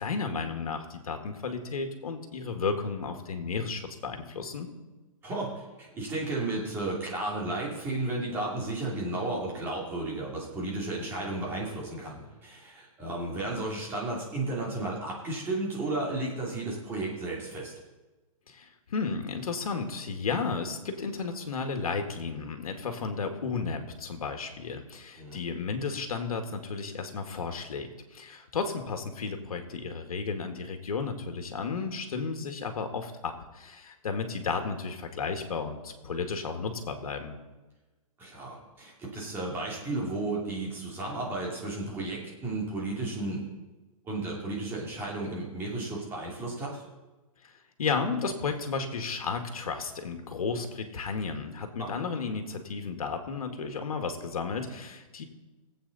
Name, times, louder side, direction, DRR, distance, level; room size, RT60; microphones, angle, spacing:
voice 1, 0.0-4.7 18.5-37.4 47.4-47.5 47.8-55.2, left 5 dB, 80° left, 5 dB, 2.0 m, -33 dB
voice 2, 5.2-17.7 25.2-25.4 38.2-43.5 44.0-46.8 51.8-51.9, right 2 dB, 10° right, -4 dB, 2.8 m, -33 dB
19.0 x 8.3 x 4.2 m, 1.2 s
hypercardioid pair, 165°, 18 cm